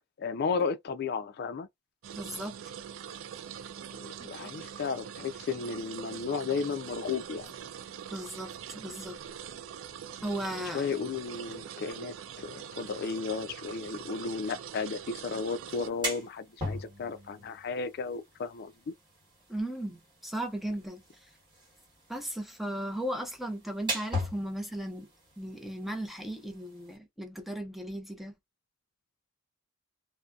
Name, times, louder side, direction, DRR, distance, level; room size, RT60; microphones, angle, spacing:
voice 1, 0.2-1.7 4.0-7.5 10.7-18.9, left 5 dB, 50° left, 0.3 m, -34 dB
sound 1, 2.0-15.9, right 8 dB, 70° right, 0.3 m, -43 dB
voice 2, 2.1-2.5 4.2-4.6 8.1-9.2 10.2-10.9 19.5-21.3 22.1-25.1 25.4-28.4, right 1 dB, ahead, 0.5 m, -36 dB
sound 2, 15.7-27.0, left 1 dB, 25° right, 1.2 m, -41 dB
2.6 x 2.1 x 2.3 m
head